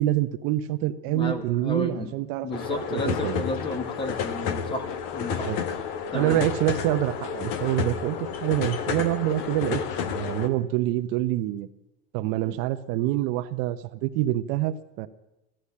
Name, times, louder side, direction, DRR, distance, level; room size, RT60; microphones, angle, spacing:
voice 1, 0.0-3.4 5.3-5.6 6.1-11.7 12.1-15.1, right 14 dB, 50° right, 10 dB, 0.8 m, -26 dB
voice 2, 1.1-2.1 2.4-4.9 5.1-5.5 6.1-6.4 12.5-12.6, left 2 dB, 15° left, 9 dB, 1.5 m, -32 dB
sound 1, 2.5-10.5, left 7 dB, 55° left, 1.5 m, -31 dB
14.5 x 12.0 x 8.4 m, 0.94 s
supercardioid pair, 155°, 29 cm